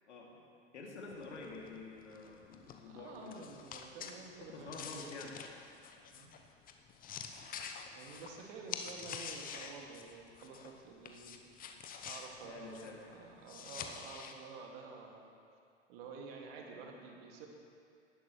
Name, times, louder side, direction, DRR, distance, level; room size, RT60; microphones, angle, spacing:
voice 1, 0.7-3.5 4.4-5.3 12.4-13.0, left 3 dB, 70° left, -2 dB, 2.6 m, -48 dB
sound 1, 1.1-10.8 11.1-14.3, left 7 dB, 25° left, 0.9 m, -47 dB
voice 2, 2.9-5.2 6.1-6.3 7.9-11.4 12.0-15.3 15.9-17.5, right 4 dB, 55° right, 0 dB, 2.2 m, -50 dB
19.0 x 11.0 x 3.2 m, 2.4 s
figure-of-eight pair, 90°, 36 cm